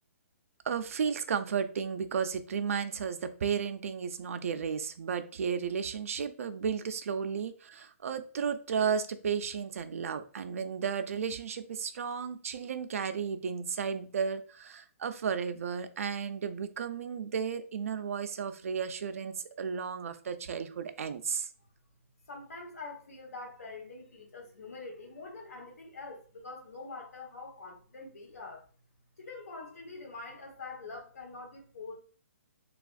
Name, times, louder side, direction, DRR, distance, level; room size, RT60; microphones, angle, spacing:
voice 1, 0.6-21.5, right 6 dB, 70° right, 0.4 m, -33 dB
voice 2, 22.3-28.6 29.2-32.0, left 3 dB, 85° left, 1.2 m, -45 dB
3.3 x 2.4 x 2.4 m
hypercardioid pair, 165°, 8 cm